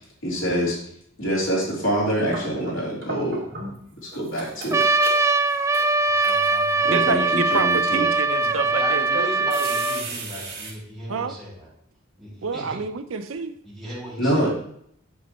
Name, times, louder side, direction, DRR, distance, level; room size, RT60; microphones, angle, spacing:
voice 1, 0.2-0.8 1.2-3.4 4.1-4.8 6.8-8.0 14.2-14.5, equal, 75° left, -6 dB, 3.5 m, -25 dB
sound 1, 2.1-3.9 4.1-6.7 7.3-7.8 8.5-8.6 9.5-10.7, right 3 dB, 50° right, 3.1 m, -36 dB
Trumpet, 4.7-10.0, right 3 dB, 15° right, 0.3 m, -21 dB
voice 2, 6.1-6.9 8.4-11.7 12.2-12.8 13.6-14.5, equal, ahead, -7 dB, 3.0 m, -37 dB
voice 3, 6.9-9.7 11.1-11.4 12.4-13.5, right 5 dB, 80° right, 9 dB, 0.6 m, -28 dB
8.1 x 8.0 x 3.0 m, 0.67 s
head